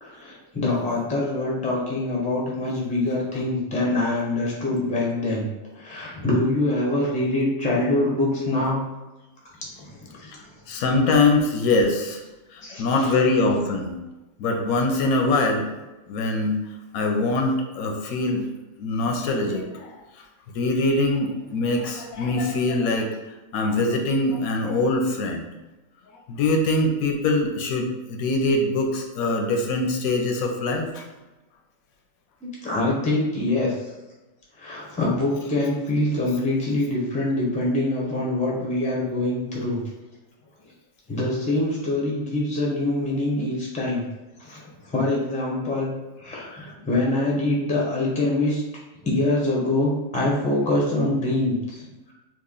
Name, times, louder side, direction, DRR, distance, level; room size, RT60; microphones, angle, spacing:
voice 1, 0.0-5.5 5.7-8.8 9.8-10.2 12.6-13.1 32.4-33.9 34.6-39.8 41.1-44.0 44.4-45.9 46.2-48.6 49.0-52.1, left 2 dB, 10° left, -4 dB, 0.5 m, -24 dB
voice 2, 10.7-12.2 12.5-14.0 14.4-15.7 16.1-16.6 16.9-18.5 18.8-20.0 20.5-23.1 23.5-25.5 26.3-31.0, left 2 dB, 85° left, 2 dB, 1.0 m, -23 dB
3.0 x 2.4 x 3.7 m, 1.1 s
omnidirectional pair, 1.5 m